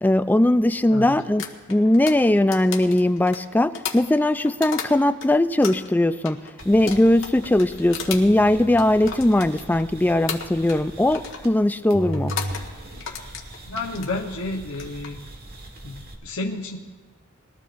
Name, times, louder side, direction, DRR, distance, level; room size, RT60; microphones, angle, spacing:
voice 1, 0.0-1.4 1.7-6.4 6.7-12.3, left 1 dB, 10° left, 11 dB, 0.3 m, -19 dB
sound 1, 1.4-5.3 5.6-9.9 10.3-10.9 11.1-11.5 12.1-12.6 13.0-14.1 14.7-15.1, left 6 dB, 65° left, 1.5 m, -34 dB
sound 2, 6.6-11.6 11.9-16.1, right 1 dB, 45° right, 1.6 m, -38 dB
voice 2, 13.7-15.2 15.8-16.8, left 2 dB, 90° left, -1 dB, 1.0 m, -31 dB
22.0 x 14.0 x 2.6 m, 1.4 s
head